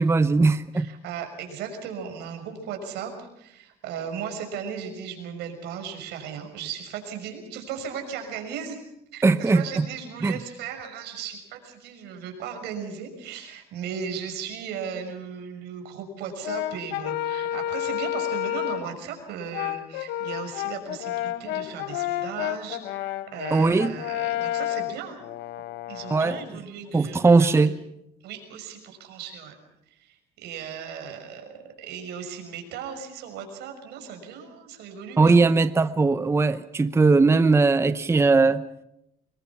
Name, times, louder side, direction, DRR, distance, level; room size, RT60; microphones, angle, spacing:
voice 1, 0.0-0.9 9.2-9.6 10.2-10.3 23.5-24.0 26.1-26.4 26.9-27.7 35.2-38.6, right 3 dB, 15° right, 12 dB, 0.8 m, -19 dB
voice 2, 0.7-8.8 9.1-25.2 25.9-27.7 28.2-29.5 29.9-35.4, right 7 dB, 85° right, 5 dB, 5.9 m, -37 dB
Brass instrument, 16.4-18.9 19.5-26.5, left 13 dB, 85° left, 0.9 m, -30 dB
25.5 x 21.5 x 6.0 m, 0.83 s
cardioid pair, 110°, 17 cm